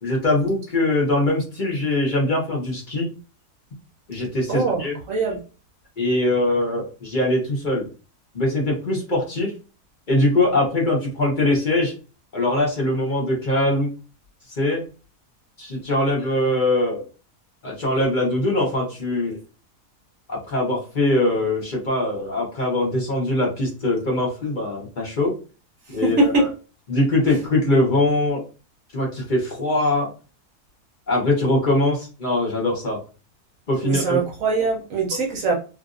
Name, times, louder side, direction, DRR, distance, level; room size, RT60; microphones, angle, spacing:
voice 1, 0.0-3.1 4.1-5.0 6.0-7.9 8.3-9.5 10.1-11.9 12.3-13.9 14.5-14.8 15.6-17.0 17.6-19.4 20.3-25.3 25.9-26.5 26.9-28.4 28.9-30.1 31.1-33.0 33.7-34.2, left 1 dB, 35° left, -2 dB, 1.0 m, -22 dB
voice 2, 4.5-4.8 5.1-5.4 26.0-26.5 33.8-35.5, right 3 dB, 60° right, -1 dB, 1.1 m, -22 dB
2.9 x 2.6 x 2.4 m, 0.34 s
omnidirectional pair, 1.7 m